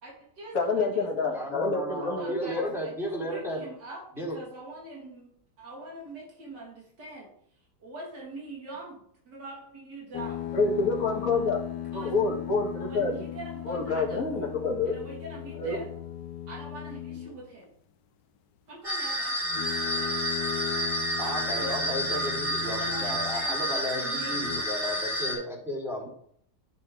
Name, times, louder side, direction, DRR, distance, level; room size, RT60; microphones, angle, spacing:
voice 1, 0.0-1.1 1.9-5.3 5.6-7.3 7.8-9.0 9.3-10.4 11.9-12.3 12.8-14.6 14.8-15.9 16.5-17.7 18.7-19.4 19.8-20.1 21.6-24.4, right 2 dB, 80° right, -3 dB, 2.7 m, -43 dB
voice 2, 0.5-2.7 10.5-11.6 11.9-13.1 13.7-15.0 15.6-15.8, left 3 dB, 55° left, -1 dB, 2.3 m, -27 dB
voice 3, 1.3-3.6 4.1-4.4 21.2-26.1, equal, ahead, -8 dB, 4.0 m, -34 dB
sound 1, 10.1-17.5 19.4-23.6 24.3-24.6, left 12 dB, 90° left, 1.3 m, -37 dB
sound 2, 18.8-25.3, right 1 dB, 35° right, 3.5 m, -30 dB
12.5 x 6.3 x 3.6 m, 0.65 s
omnidirectional pair, 1.8 m